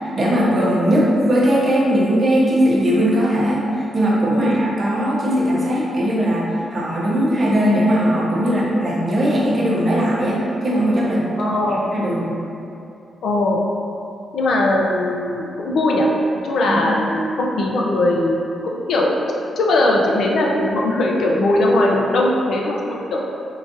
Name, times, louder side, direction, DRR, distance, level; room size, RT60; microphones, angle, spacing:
voice 1, 0.0-3.6 3.9-6.4 6.7-11.2 11.9-12.3 16.7-16.9, equal, 35° right, -6 dB, 0.6 m, -19 dB
voice 2, 11.4-11.9 13.2-13.6 14.3-16.1 16.4-19.1 19.6-23.2, left 1 dB, 65° left, -2 dB, 0.4 m, -19 dB
3.7 x 2.4 x 2.5 m, 2.7 s
wide cardioid pair, 145°, 0 cm